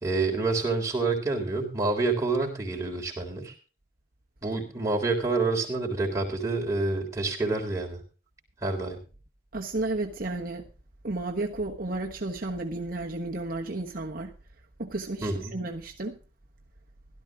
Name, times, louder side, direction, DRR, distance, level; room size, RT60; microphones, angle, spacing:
voice 1, 0.0-3.5 4.4-8.0 8.6-9.0 15.2-15.5, right 3 dB, 15° right, 3.7 m, -28 dB
voice 2, 9.5-10.7 11.0-14.3 14.8-16.2, right 2 dB, 50° right, 1.3 m, -32 dB
16.5 x 12.5 x 3.7 m
head